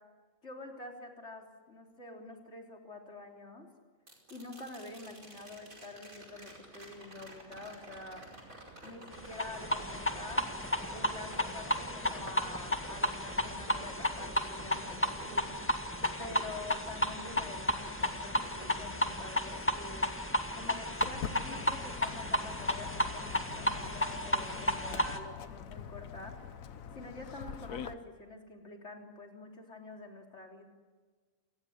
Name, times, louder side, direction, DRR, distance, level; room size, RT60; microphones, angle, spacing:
voice 1, 0.4-3.7 4.3-8.2 8.8-10.6 10.9-15.5 16.2-20.1 20.5-26.4 26.9-30.6, left 2 dB, 55° left, 2 dB, 4.1 m, -47 dB
sound 1, 4.1-18.2 18.6-19.6 21.9-22.0, right 2 dB, 90° right, 5.5 m, -52 dB
sound 2, 9.3-25.2, equal, 10° left, 1.8 m, -33 dB
Walk footsteps, 21.0-27.9, left 8 dB, 85° left, 1.4 m, -44 dB
29.0 x 19.5 x 9.5 m, 1.4 s
omnidirectional pair, 1.4 m